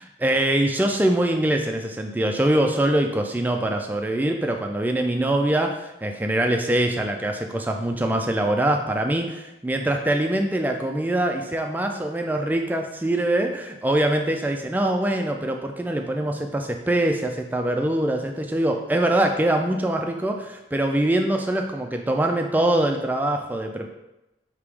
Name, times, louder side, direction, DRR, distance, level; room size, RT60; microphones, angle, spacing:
voice 1, 0.2-23.9, right 1 dB, 10° right, 3 dB, 0.3 m, -23 dB
3.5 x 2.9 x 4.7 m, 0.96 s
head